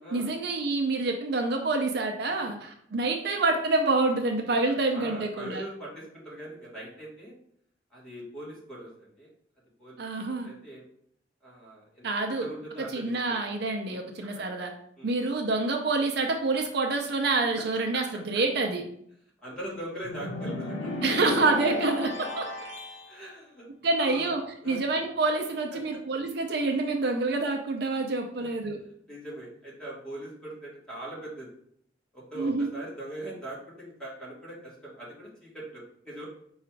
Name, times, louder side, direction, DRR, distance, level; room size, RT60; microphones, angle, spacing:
voice 1, 0.1-5.6 10.0-10.5 12.0-12.5 12.9-14.7 15.0-18.8 21.0-22.4 23.8-28.8 32.4-32.7, right 3 dB, 60° right, 3 dB, 0.5 m, -27 dB
voice 2, 4.6-7.3 7.9-9.3 9.8-10.0 10.4-10.8 11.4-13.4 13.8-14.0 14.3-14.4 15.0-15.1 19.4-20.9 23.1-23.7 24.0-24.3 24.6-24.8 25.7-26.0 28.4-28.5 29.1-31.5 32.1-36.2, right 1 dB, 5° left, -7 dB, 1.6 m, -41 dB
sound 1, 20.0-23.0, left 2 dB, 80° left, 0.8 m, -34 dB
4.9 x 2.4 x 4.4 m, 0.69 s
head